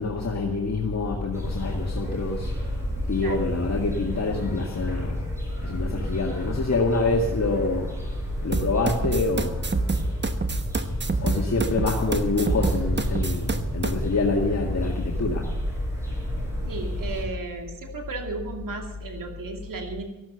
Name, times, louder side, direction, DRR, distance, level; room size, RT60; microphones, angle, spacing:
voice 1, 0.0-2.5 3.1-5.2 5.6-7.9 8.4-9.7 11.2-15.5, left 3 dB, 55° left, 0 dB, 1.9 m, -26 dB
sound 1, 1.3-17.3, equal, 10° right, 7.1 m, -31 dB
sound 2, 8.5-13.9, right 4 dB, 35° right, 1.2 m, -27 dB
voice 2, 16.6-20.0, right 3 dB, 80° right, 3 dB, 2.5 m, -34 dB
13.0 x 12.0 x 6.9 m, 1.0 s
cardioid pair, 65°, 32 cm